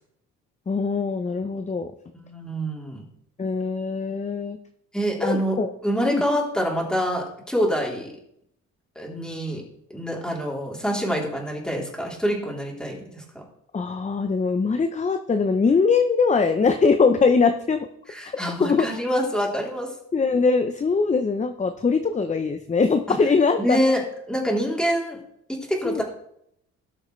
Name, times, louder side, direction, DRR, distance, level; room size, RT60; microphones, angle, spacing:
voice 1, 0.7-1.9 3.4-4.6 5.2-5.7 6.1-6.2 13.7-17.9 18.2-18.3 18.6-18.9 20.1-23.8 25.8-26.0, left 4 dB, 25° left, 7 dB, 0.7 m, -22 dB
voice 2, 2.1-3.0 4.9-5.6 5.8-8.1 8.9-9.6 9.9-13.4 18.1-19.9 23.6-24.0 24.3-25.2 25.5-26.0, equal, 5° left, -2 dB, 3.3 m, -26 dB
17.5 x 6.5 x 3.2 m, 0.73 s
cardioid pair, 90°, 30 cm